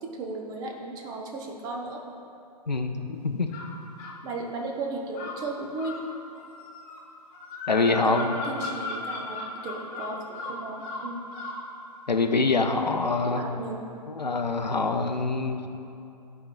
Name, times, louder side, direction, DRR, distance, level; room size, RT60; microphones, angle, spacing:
voice 1, 0.0-2.0 4.2-6.0 7.8-11.2 12.2-12.3 13.2-13.8, right 3 dB, 20° right, 0 dB, 0.6 m, -35 dB
sound 1, 3.5-4.2 5.1-11.7, left 2 dB, 25° left, 0.8 m, -37 dB
voice 2, 7.7-8.3 12.1-13.5 14.1-15.7, left 3 dB, 85° left, 6 dB, 0.6 m, -25 dB
12.5 x 4.6 x 2.2 m, 2.6 s
figure-of-eight pair, 120°, 21 cm